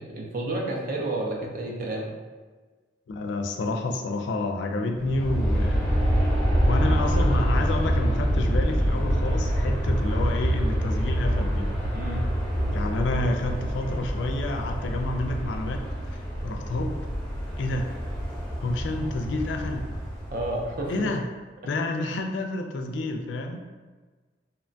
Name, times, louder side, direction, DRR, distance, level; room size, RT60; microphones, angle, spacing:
voice 1, 0.0-2.1 11.9-12.2 20.3-21.1, right 1 dB, 50° right, -1 dB, 0.5 m, -30 dB
voice 2, 3.1-5.9 6.2-6.3 6.6-11.7 12.7-17.0 17.6-17.9 18.6-19.8 20.9-21.2 21.7-23.6, left 2 dB, 80° left, 4 dB, 0.3 m, -29 dB
Aircraft, 4.9-21.0, equal, 5° left, 0.6 m, -26 dB
2.9 x 2.2 x 2.5 m, 1.3 s
head